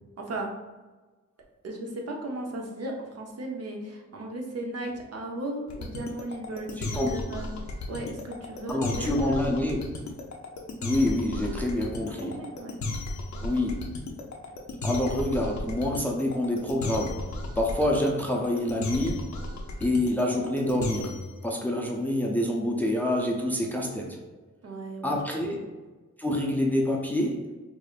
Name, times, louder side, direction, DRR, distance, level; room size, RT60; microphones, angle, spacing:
voice 1, 0.2-0.5 1.6-7.5 7.9-9.4 12.4-12.8 24.6-25.2 25.5-25.6, right 1 dB, 55° right, 1 dB, 0.7 m, -36 dB
sound 1, 5.7-21.3, left 2 dB, 70° left, 0.6 m, -34 dB
voice 2, 6.8-7.2 8.7-9.8 10.8-12.4 13.4-13.9 14.8-17.2 17.6-19.3 19.8-21.1 21.4-24.2 25.0-25.6 26.2-27.5, left 1 dB, 5° left, -1 dB, 0.4 m, -27 dB
4.7 x 2.5 x 2.4 m, 1.3 s
wide cardioid pair, 125°, 29 cm